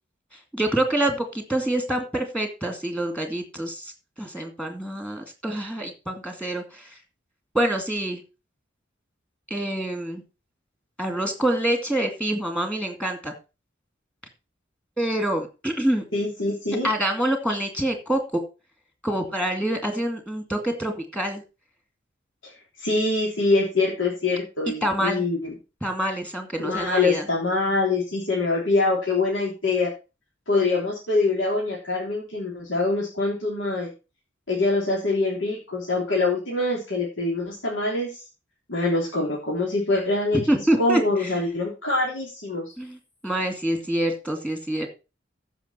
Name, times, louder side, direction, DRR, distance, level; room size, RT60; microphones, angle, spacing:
voice 1, 0.5-3.9 4.2-7.0 7.5-8.2 9.5-10.2 11.0-13.3 15.0-16.0 16.8-18.4 19.0-21.4 24.8-25.3 25.8-27.2 40.5-41.4 42.8-43.0 43.2-44.9, right 1 dB, 5° left, 5 dB, 2.2 m, -26 dB
voice 2, 16.1-16.9 22.4-22.5 22.8-25.5 26.6-29.9 30.5-33.9 34.5-38.1 38.7-40.4 40.8-42.7, left 3 dB, 80° left, -4 dB, 3.5 m, -24 dB
14.5 x 5.9 x 4.4 m, 0.30 s
head